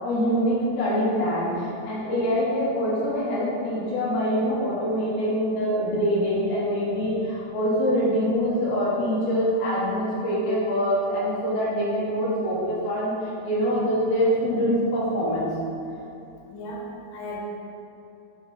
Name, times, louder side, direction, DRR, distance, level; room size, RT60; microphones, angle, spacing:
voice 1, 0.0-13.1 13.4-15.5, equal, 60° left, -7 dB, 1.9 m, -24 dB
voice 2, 16.5-17.4, left 1 dB, 85° left, -1 dB, 2.7 m, -36 dB
6.2 x 3.9 x 3.9 m, 2.8 s
omnidirectional pair, 4.6 m